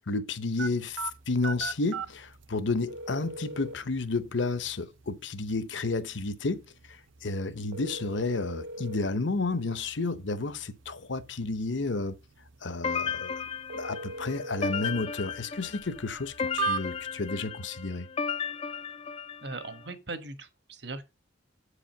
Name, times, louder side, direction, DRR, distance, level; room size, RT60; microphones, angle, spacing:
voice 1, 0.1-6.6 6.9-12.2 12.6-13.4 13.8-18.1, left 3 dB, 70° left, 0.9 m, -31 dB
sound 1, 0.6-17.3, right 4 dB, 80° right, 0.6 m, -40 dB
sound 2, 12.8-19.8, left 6 dB, 30° left, 0.4 m, -35 dB
voice 2, 19.4-21.1, right 3 dB, 55° right, 1.3 m, -39 dB
8.2 x 5.0 x 5.7 m
head